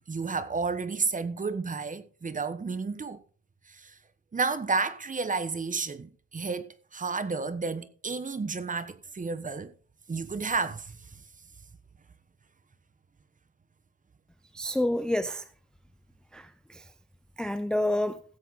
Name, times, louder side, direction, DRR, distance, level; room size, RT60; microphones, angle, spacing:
voice 1, 0.1-3.2 3.7-3.9 4.3-9.7 10.1-11.0, right 4 dB, 25° right, 1.2 m, -31 dB
voice 2, 14.5-15.4 16.3-16.8 17.4-18.2, left 1 dB, ahead, 0.6 m, -28 dB
16.0 x 7.9 x 4.1 m
cardioid pair, 90°, 30 cm